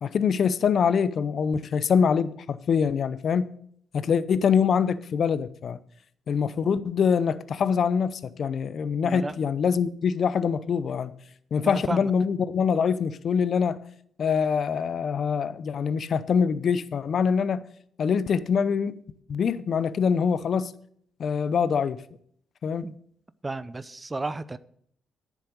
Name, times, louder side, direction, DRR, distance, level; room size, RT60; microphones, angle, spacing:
voice 1, 0.0-3.5 3.9-5.8 6.3-11.1 11.5-13.8 14.2-17.6 18.0-19.0 19.3-20.7 21.2-22.0 22.6-22.9, left 6 dB, 60° left, 0.7 m, -24 dB
voice 2, 9.0-9.3 11.6-12.1 22.8-23.0 23.4-24.6, right 2 dB, 25° right, 0.6 m, -32 dB
10.5 x 7.4 x 6.5 m
supercardioid pair, 55°, 0 cm